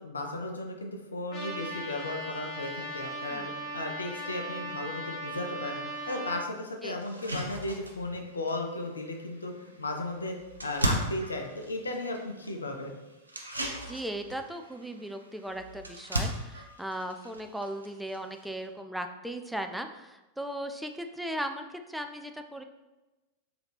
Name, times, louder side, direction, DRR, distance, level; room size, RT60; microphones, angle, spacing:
voice 1, 0.0-10.4 10.6-12.9, left 2 dB, 75° left, 3 dB, 0.5 m, -35 dB
Trumpet, 1.3-6.4, right 1 dB, 25° left, 1.2 m, -38 dB
sound 1, 6.0-6.1 6.5-6.6 7.0-18.7, right 1 dB, 80° right, 0.5 m, -38 dB
voice 2, 13.9-22.6, right 1 dB, ahead, 6 dB, 0.3 m, -37 dB
3.9 x 2.7 x 3.3 m, 1.1 s
figure-of-eight pair, 90°, 0 cm